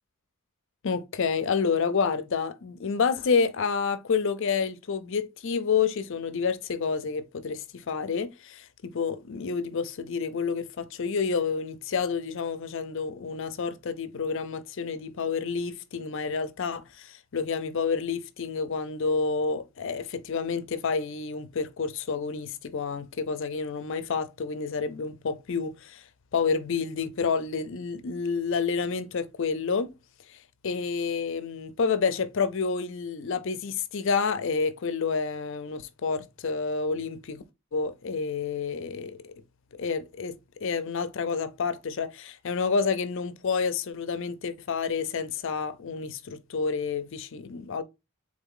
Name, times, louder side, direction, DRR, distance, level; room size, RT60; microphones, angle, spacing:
voice 1, 0.8-26.1 26.3-29.9 30.3-37.4 37.7-39.3 39.8-40.4 40.6-47.8, left 5 dB, 60° left, 0.5 m, -29 dB
3.8 x 3.5 x 3.7 m
head